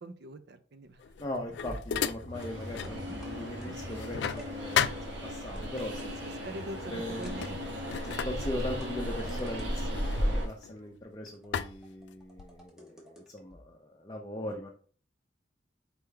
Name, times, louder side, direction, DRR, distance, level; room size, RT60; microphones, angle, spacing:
voice 1, 0.0-1.0 1.5-1.6 6.2-7.9, right 1 dB, 65° right, 11 dB, 0.5 m, -44 dB
sound 1, 1.0-3.0 3.4-5.7 6.6-6.8 7.1-11.0 11.5-12.7, left 8 dB, 70° left, 0.3 m, -35 dB
voice 2, 1.2-6.2 6.9-7.3 8.2-14.7, left 1 dB, 25° left, 0 dB, 0.5 m, -39 dB
sound 2, 1.6-4.5 5.6-6.1 7.2-7.7 8.5-9.8 11.3-13.2 13.5-13.6, equal, 5° right, 0.9 m, -45 dB
Train, 2.3-10.5, equal, 85° right, 1.1 m, -36 dB
4.4 x 3.6 x 3.3 m, 0.42 s
head